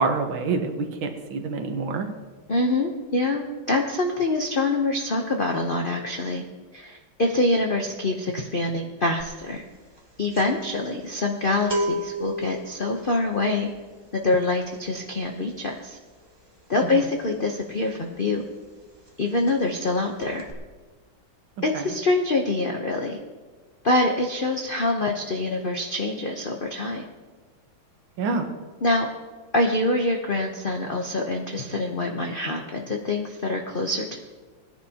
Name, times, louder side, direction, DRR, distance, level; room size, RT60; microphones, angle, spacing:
voice 1, 0.0-2.1 16.9-17.0 21.7-21.9 28.2-28.5, right 4 dB, 75° right, 5 dB, 1.9 m, -27 dB
voice 2, 2.5-6.4 6.7-9.6 10.2-13.7 14.1-16.0 16.7-18.4 19.2-20.5 21.6-23.2 23.8-27.0 28.8-29.1 29.5-34.2, left 2 dB, 80° left, 2 dB, 0.4 m, -25 dB
sound 1, 9.2-9.5 9.7-18.3 18.6-18.8 19.1-19.9 20.2-20.5, equal, 20° right, 0.7 m, -34 dB
19.0 x 10.0 x 2.9 m, 1.3 s
omnidirectional pair, 2.2 m